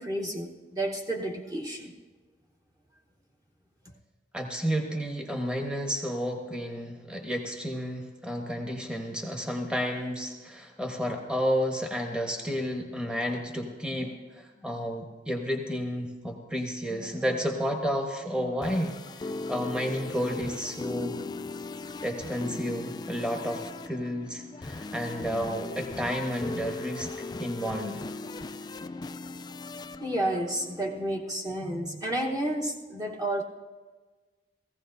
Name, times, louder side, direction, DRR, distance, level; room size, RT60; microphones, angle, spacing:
voice 1, 0.0-1.9 30.0-33.4, right 1 dB, 20° right, -1 dB, 1.1 m, -31 dB
voice 2, 4.3-18.9 19.5-21.2 22.0-27.1 27.4-28.0, equal, 5° right, 2 dB, 1.1 m, -31 dB
sound 1, 18.4-31.2, left 3 dB, 25° left, 0.3 m, -39 dB
19.0 x 15.5 x 2.6 m, 1.3 s
head